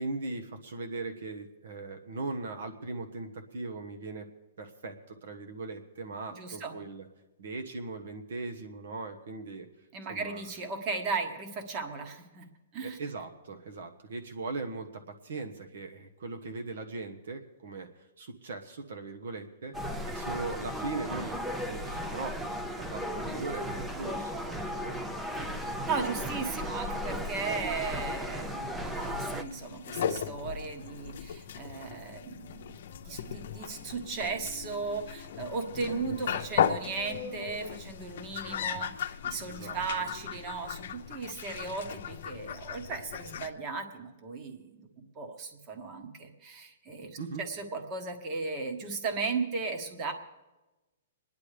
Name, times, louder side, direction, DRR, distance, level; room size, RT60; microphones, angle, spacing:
voice 1, 0.0-4.3 4.6-7.1 7.4-9.7 10.1-10.4 12.8-25.0 39.5-39.8 41.4-41.8 47.2-47.4, right 3 dB, 70° right, 6 dB, 1.2 m, -39 dB
voice 2, 6.3-6.7 9.9-12.5 12.7-13.0 23.3-23.4 25.9-47.1 47.4-50.1, right 4 dB, 30° right, 5 dB, 1.4 m, -36 dB
sound 1, 19.7-29.4, equal, 5° right, 0.6 m, -35 dB
sound 2, 28.8-43.5, left 8 dB, 60° left, 0.7 m, -36 dB
27.0 x 10.5 x 3.4 m, 1.1 s
hypercardioid pair, 150°, 0 cm